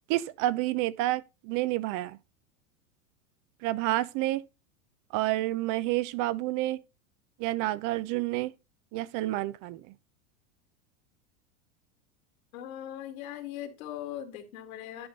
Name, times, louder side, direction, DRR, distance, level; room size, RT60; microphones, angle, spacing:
voice 1, 0.1-2.2 3.6-4.4 5.1-6.8 7.4-8.5 8.9-9.8, right 16 dB, 45° right, 0.8 m, -29 dB
voice 2, 12.5-15.1, left 11 dB, 70° left, 2.1 m, -40 dB
11.0 x 5.3 x 3.9 m
hypercardioid pair, 115°, 43 cm